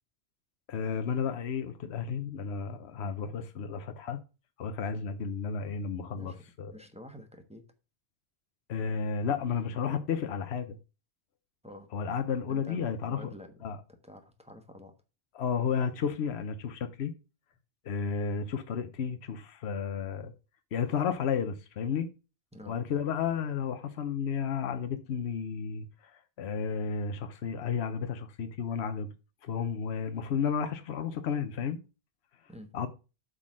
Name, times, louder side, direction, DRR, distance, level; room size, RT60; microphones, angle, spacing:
voice 1, 0.7-4.2 4.6-6.7 8.7-10.8 11.9-13.2 13.6-13.8 15.3-17.1 17.8-20.3 20.7-22.1 22.7-29.1 29.4-31.8 32.7-32.9, left 6 dB, 75° left, 1.0 m, -32 dB
voice 2, 6.7-7.6 11.6-11.9 12.5-13.8 14.0-14.9 22.5-22.8 32.5-32.7, equal, 5° right, 1.1 m, -48 dB
8.2 x 3.8 x 6.2 m
omnidirectional pair, 1.1 m